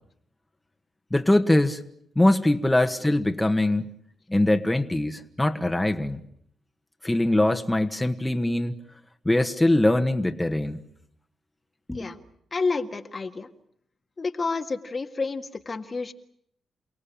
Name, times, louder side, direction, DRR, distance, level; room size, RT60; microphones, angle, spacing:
voice 1, 1.1-1.8 2.2-3.9 4.3-6.2 7.0-8.7 9.3-10.8 11.9-12.1, left 1 dB, 15° left, 1.8 m, -22 dB
voice 2, 12.5-13.5 14.2-16.1, left 4 dB, 40° left, 1.9 m, -29 dB
29.0 x 18.0 x 8.8 m
cardioid pair, 65°, 0 cm